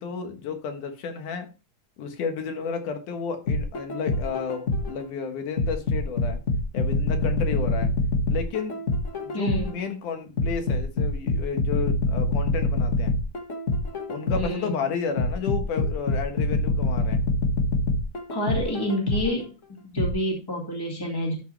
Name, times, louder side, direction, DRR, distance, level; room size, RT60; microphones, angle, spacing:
voice 1, 0.0-1.5 2.0-6.4 6.7-7.9 8.3-8.8 9.2-13.1 14.1-17.2, left 6 dB, 70° left, 6 dB, 2.8 m, -32 dB
sound 1, 3.5-5.0 5.6-9.8 10.4-14.6 15.2-19.4 20.0-20.1, left 2 dB, 55° left, 0.8 m, -25 dB
voice 2, 9.3-9.7 14.4-14.8 18.3-19.5 19.9-21.3, equal, 10° left, -1 dB, 1.2 m, -28 dB
12.0 x 6.2 x 3.3 m, 0.31 s
omnidirectional pair, 3.8 m